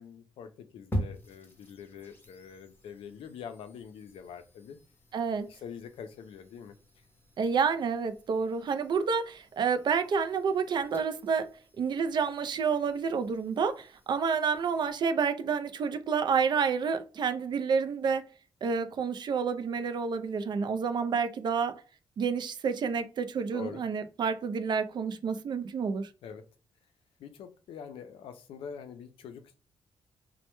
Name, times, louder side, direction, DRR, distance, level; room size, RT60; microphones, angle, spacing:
voice 1, 0.0-4.8 5.5-6.7 23.5-23.8 26.2-26.4 27.2-29.5, left 7 dB, 85° left, 0.4 m, -45 dB
sound 1, 0.9-14.9, equal, 25° left, 0.7 m, -45 dB
voice 2, 5.1-5.5 7.4-11.5 11.8-18.2 18.6-21.8 22.2-26.1, right 6 dB, 55° right, 0.3 m, -29 dB
2.1 x 2.1 x 2.9 m
cardioid pair, 95°, 9 cm